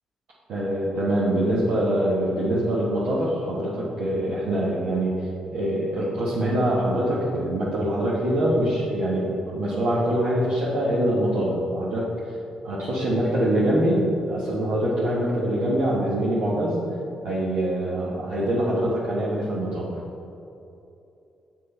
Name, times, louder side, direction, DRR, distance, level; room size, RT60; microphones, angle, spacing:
voice 1, 0.5-12.3 12.6-16.8 17.2-19.9, right 1 dB, 75° right, -8 dB, 1.2 m, -24 dB
6.6 x 6.0 x 4.2 m, 2.8 s
supercardioid pair, 50°, 2 cm